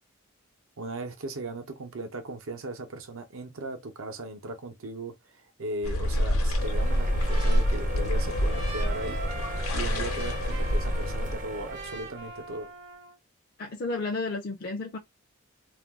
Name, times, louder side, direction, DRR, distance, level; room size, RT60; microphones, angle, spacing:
voice 1, 0.8-9.2 9.7-12.7, right 2 dB, 75° right, 0.7 m, -37 dB
sound 1, 5.8-11.4, equal, 85° left, 0.9 m, -27 dB
Trumpet, 6.4-13.2, right 2 dB, 55° right, 0.9 m, -42 dB
sound 2, 6.6-12.5, right 1 dB, 35° right, 0.5 m, -39 dB
voice 2, 13.6-15.0, left 3 dB, 45° left, 0.4 m, -32 dB
2.4 x 2.3 x 3.5 m
head